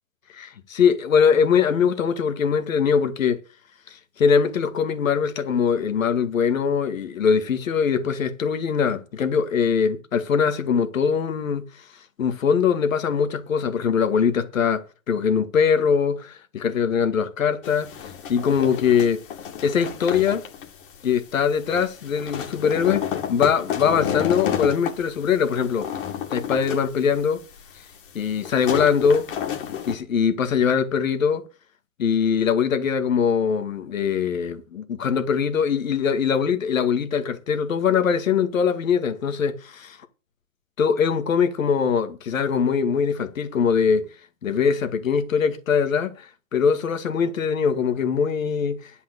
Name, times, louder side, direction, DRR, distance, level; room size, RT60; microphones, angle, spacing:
voice 1, 0.3-3.4 3.9-11.8 12.2-19.2 19.6-20.4 21.0-23.0 23.3-25.9 26.3-27.4 28.1-29.3 29.9-31.5 32.0-40.0 40.8-44.0 44.4-48.9, left 6 dB, 85° left, 2.1 m, -22 dB
sound 1, 17.6-30.0, left 9 dB, 40° left, 2.4 m, -31 dB
11.0 x 5.5 x 8.2 m
hypercardioid pair, 170°, 39 cm